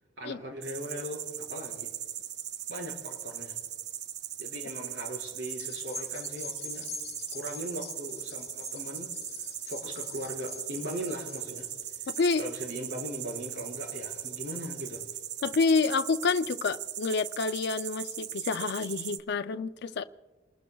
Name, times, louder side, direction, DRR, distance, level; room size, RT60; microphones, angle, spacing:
voice 1, 0.2-1.9 2.7-3.6 4.4-6.9 7.3-9.1 9.6-11.7 12.4-15.0, equal, 85° right, 0 dB, 4.8 m, -39 dB
sound 1, 0.6-19.2, right 11 dB, 60° right, 0.6 m, -39 dB
sound 2, 5.0-15.0, right 1 dB, 35° right, 6.8 m, -60 dB
sound 3, 5.4-14.1 14.6-14.7, left 8 dB, 35° left, 1.0 m, -45 dB
voice 2, 15.4-20.0, left 4 dB, 60° left, 10 dB, 0.4 m, -28 dB
29.0 x 20.5 x 2.3 m, 1.2 s
head